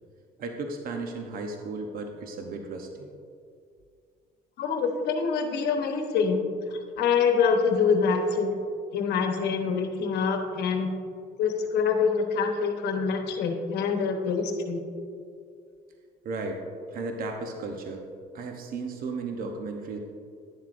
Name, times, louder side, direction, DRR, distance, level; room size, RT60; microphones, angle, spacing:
voice 1, 0.4-3.1 16.2-16.6 16.9-18.0 18.3-20.0, right 3 dB, 60° right, 3 dB, 0.8 m, -34 dB
voice 2, 4.6-6.5 7.0-8.6 8.9-10.9 11.4-14.8, left 5 dB, 75° left, 4 dB, 1.0 m, -25 dB
10.5 x 7.4 x 2.5 m, 2.3 s
cardioid pair, 110°, 17 cm